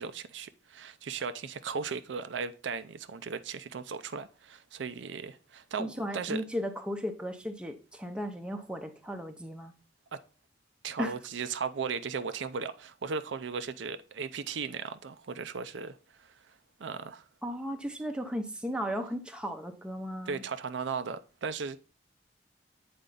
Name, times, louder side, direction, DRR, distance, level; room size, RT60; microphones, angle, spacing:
voice 1, 0.0-6.4 10.8-16.0 16.8-17.2 20.3-21.8, right 5 dB, 80° right, 0.5 m, -36 dB
voice 2, 5.8-9.7 11.0-11.1 17.4-20.4, equal, 5° right, 0.7 m, -35 dB
8.3 x 4.3 x 3.8 m
head